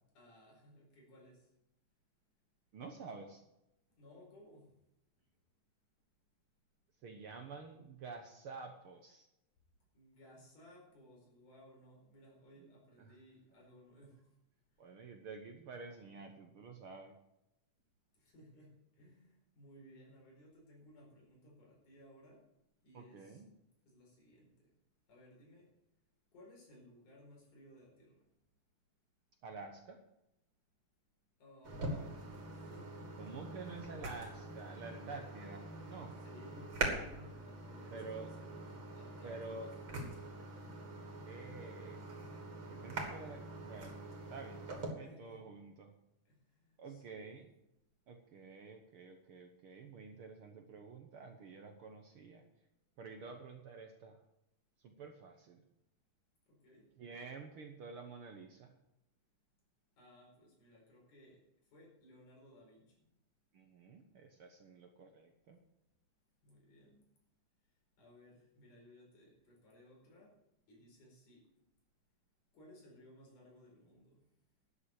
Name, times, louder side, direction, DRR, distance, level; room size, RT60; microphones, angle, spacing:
voice 1, 0.1-1.4 4.0-4.6 9.9-14.2 18.1-18.7 19.0-22.4 22.8-23.4 23.9-24.5 25.1-25.7 26.3-28.2 31.4-32.1 32.5-33.3 33.6-33.7 36.2-40.0 45.0-45.5 46.3-47.4 56.5-56.8 60.0-61.4 61.7-63.0 66.4-67.0 68.0-70.3 70.7-71.4 72.5-74.2, equal, 80° left, -2 dB, 6.3 m, -60 dB
voice 2, 2.7-3.5 7.0-9.3 12.6-12.7 13.0-13.2 14.8-17.2 22.9-23.5 29.4-30.0 33.2-36.1 37.9-38.3 39.2-39.7 41.2-42.0 42.7-45.9 46.8-47.5 48.1-52.4 53.0-54.2 54.8-55.6 57.0-58.7 63.5-65.6, right 4 dB, 60° right, 5 dB, 1.5 m, -49 dB
sound 1, 31.6-44.9, right 2 dB, 40° right, 3.1 m, -44 dB
12.0 x 7.5 x 8.2 m, 0.88 s
omnidirectional pair, 3.5 m